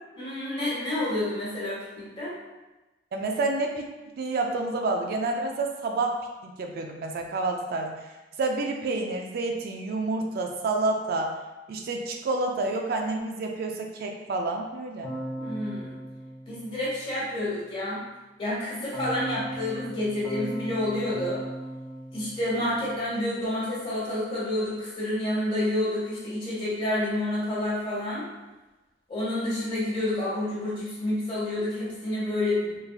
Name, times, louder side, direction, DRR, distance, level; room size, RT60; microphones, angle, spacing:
voice 1, 0.2-2.3 15.4-16.0 16.5-18.0 18.4-21.4 22.1-28.3 29.1-32.8, left 1 dB, 30° left, -8 dB, 1.3 m, -29 dB
voice 2, 3.1-3.8 4.2-6.2 6.4-7.9 8.4-11.3 11.7-15.1, right 3 dB, 55° right, 2 dB, 0.3 m, -29 dB
Keyboard (musical), 15.0-17.3 18.9-23.2, right 1 dB, 5° left, 0.8 m, -38 dB
3.8 x 2.6 x 2.4 m, 1.1 s
head